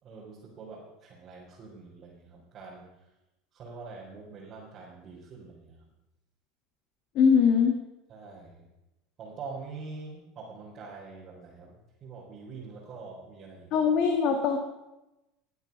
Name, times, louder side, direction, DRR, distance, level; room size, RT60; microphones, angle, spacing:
voice 1, 0.0-3.1 3.5-5.9 8.1-8.6 9.2-13.9, right 4 dB, 40° right, -6 dB, 4.1 m, -45 dB
voice 2, 7.2-7.8 13.7-14.6, left 6 dB, 50° left, 4 dB, 1.8 m, -22 dB
20.5 x 8.1 x 5.4 m, 0.97 s
hypercardioid pair, 80°, 0 cm